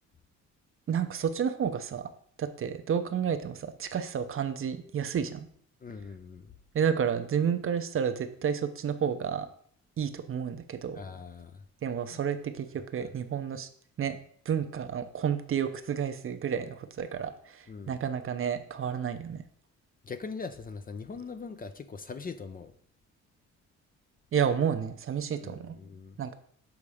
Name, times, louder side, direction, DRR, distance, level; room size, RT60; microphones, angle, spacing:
voice 1, 0.9-2.0 2.4-5.5 6.7-9.5 10.0-11.0 11.8-13.7 14.0-14.2 14.5-19.4 24.3-25.8 26.2-26.3, right 7 dB, 45° right, 9 dB, 0.7 m, -30 dB
voice 2, 5.8-6.5 10.9-11.7 12.1-12.2 13.0-13.1 17.7-18.0 20.0-22.7 25.4-26.2, left 4 dB, 30° left, 10 dB, 0.5 m, -41 dB
7.1 x 3.7 x 4.9 m, 0.62 s
cardioid pair, 90°, 30 cm